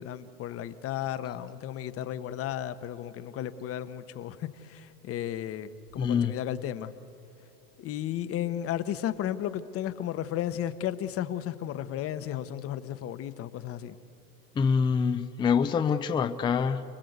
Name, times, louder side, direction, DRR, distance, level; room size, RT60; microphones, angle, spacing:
voice 1, 0.0-6.9 7.8-14.0, left 11 dB, 30° left, 13 dB, 1.1 m, -34 dB
voice 2, 6.0-6.3 14.6-16.8, left 6 dB, 10° left, 10 dB, 0.5 m, -25 dB
29.0 x 20.0 x 8.1 m, 2.6 s
hypercardioid pair, 125°, 47 cm